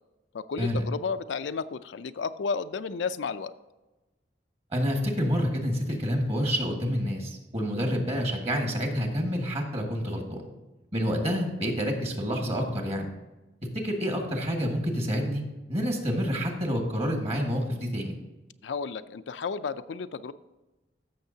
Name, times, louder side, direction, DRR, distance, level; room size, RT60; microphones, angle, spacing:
voice 1, 0.3-3.5 18.6-20.3, left 5 dB, 85° left, 11 dB, 0.4 m, -32 dB
voice 2, 4.7-10.4 10.9-13.1 13.7-15.4 15.7-18.2, equal, 35° right, 2 dB, 1.8 m, -28 dB
14.0 x 6.5 x 2.8 m, 1.1 s
head